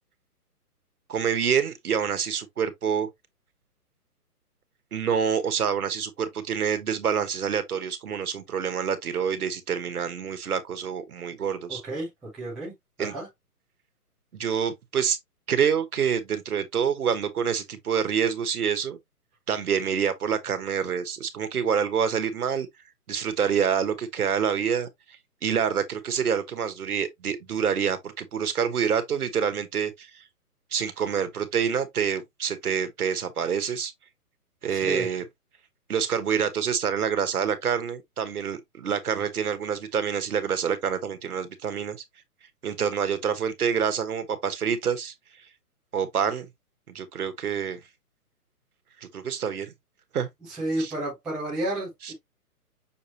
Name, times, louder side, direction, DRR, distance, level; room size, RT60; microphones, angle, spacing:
voice 1, 1.1-3.1 4.9-11.8 13.0-13.1 14.3-15.2 15.5-19.0 19.5-22.7 23.1-24.9 25.4-30.2 30.7-33.9 34.6-35.2 35.9-42.0 42.6-45.1 45.9-46.5 46.9-47.8 49.1-49.7 50.1-50.3 50.8-50.9 52.0-52.1, right 7 dB, 70° right, 1.4 m, -27 dB
voice 2, 11.7-12.1 12.3-12.7 13.0-13.3 34.7-35.1 50.5-52.1, right 1 dB, ahead, 0.5 m, -31 dB
6.3 x 2.8 x 3.0 m
hypercardioid pair, 145°, 46 cm